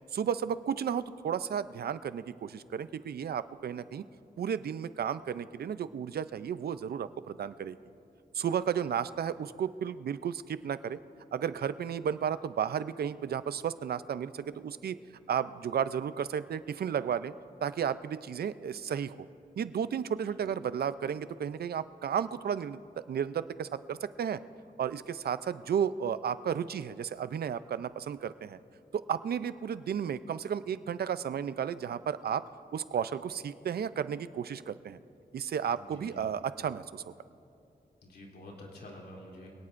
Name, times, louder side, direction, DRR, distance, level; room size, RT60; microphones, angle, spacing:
voice 1, 0.1-4.0 4.4-7.8 8.3-11.0 11.3-15.0 15.3-17.3 17.6-19.3 19.6-22.8 23.1-24.4 24.8-28.6 28.9-32.4 32.7-35.0 35.3-37.0, right 8 dB, 75° right, 14 dB, 0.5 m, -33 dB
voice 2, 35.8-36.3 38.0-39.5, left 1 dB, 80° left, -2 dB, 2.9 m, -48 dB
25.5 x 18.0 x 2.5 m, 2.6 s
wide cardioid pair, 120°, 16 cm